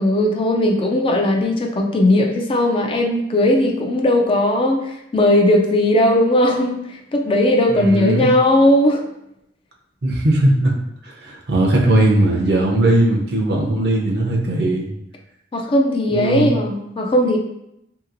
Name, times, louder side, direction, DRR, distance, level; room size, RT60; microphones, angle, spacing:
voice 1, 0.0-9.0 15.5-17.4, left 1 dB, 30° left, 2 dB, 0.3 m, -17 dB
voice 2, 7.7-8.3 10.0-10.7 11.0-14.9 16.1-16.5, right 1 dB, 65° right, -2 dB, 0.6 m, -18 dB
2.8 x 2.8 x 2.6 m, 0.81 s
head